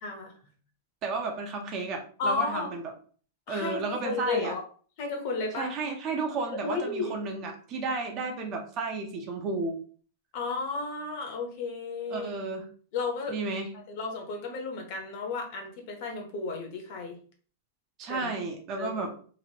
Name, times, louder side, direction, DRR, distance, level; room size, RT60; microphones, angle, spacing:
voice 1, 0.0-0.3 2.2-2.7 3.5-4.6 5.0-5.7 6.6-7.2 10.3-12.3 12.9-13.4 13.7-17.2 18.1-18.3 18.8-19.0, left 4 dB, 40° left, 3 dB, 0.7 m, -33 dB
voice 2, 1.0-2.8 3.5-4.5 5.6-9.8 12.1-12.7 13.3-13.7 18.0-19.1, right 3 dB, 30° right, 3 dB, 0.5 m, -32 dB
2.9 x 2.5 x 2.8 m, 0.43 s
supercardioid pair, 170°, 0 cm